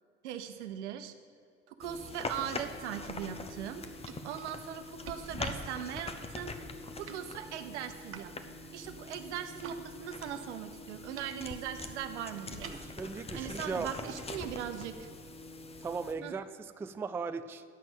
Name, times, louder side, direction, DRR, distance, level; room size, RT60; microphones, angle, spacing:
voice 1, 0.2-1.1 1.7-6.5 7.0-12.7 13.3-15.1 16.2-16.3, right 9 dB, 75° right, 9 dB, 0.9 m, -40 dB
sound 1, 1.8-16.1, left 2 dB, 15° left, 0.8 m, -43 dB
sound 2, 3.4-9.8 10.1-16.0, right 7 dB, 40° right, 0.8 m, -54 dB
voice 2, 12.7-14.1 15.8-17.6, right 5 dB, 5° right, 11 dB, 0.3 m, -38 dB
9.5 x 6.1 x 7.6 m, 2.3 s
figure-of-eight pair, 60°, 35 cm